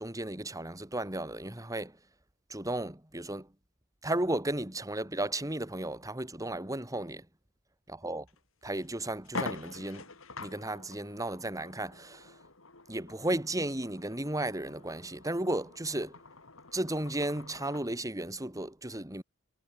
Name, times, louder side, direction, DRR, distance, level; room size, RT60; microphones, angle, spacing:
voice 1, 0.0-1.9 2.5-3.5 4.0-7.3 7.9-8.3 8.6-10.1 10.4-12.3 12.9-16.2 16.7-19.2, right 1 dB, 15° right, 2.7 m, -34 dB
sound 1, 8.3-8.4 8.8-8.9 9.2-17.9, left 3 dB, 70° left, 4.0 m, -45 dB
head